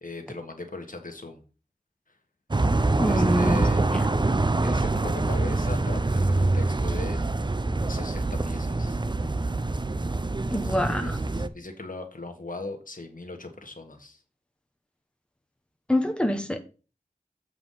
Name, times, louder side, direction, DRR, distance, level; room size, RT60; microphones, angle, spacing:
voice 1, 0.0-1.4 3.1-3.9 4.6-7.2 7.9-9.0 10.7-14.2, left 3 dB, 65° left, 5 dB, 1.6 m, -38 dB
sound 1, 2.5-11.5, right 2 dB, 30° right, 0.6 m, -25 dB
voice 2, 3.0-3.6 3.9-4.1 10.5-11.2 15.9-16.6, left 1 dB, 5° left, 6 dB, 1.2 m, -26 dB
7.9 x 4.9 x 5.6 m, 0.34 s
wide cardioid pair, 60°, 15 cm